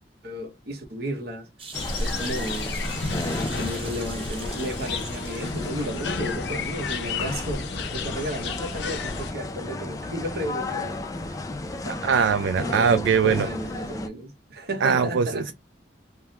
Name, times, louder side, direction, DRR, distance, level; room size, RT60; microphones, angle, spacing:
voice 1, 0.2-1.5 2.0-2.8 3.6-11.4 11.8-12.0 12.5-15.5, equal, 55° right, 0.9 m, -33 dB
sound 1, 1.6-6.1 6.5-6.6, right 4 dB, 30° right, 0.7 m, -42 dB
sound 2, 1.7-9.3, left 3 dB, 65° left, 0.6 m, -32 dB
sound 3, 1.7-14.1, left 2 dB, 20° left, 0.3 m, -34 dB
voice 2, 12.0-13.5 14.8-15.5, right 6 dB, 70° right, 0.3 m, -21 dB
3.4 x 2.1 x 2.7 m
head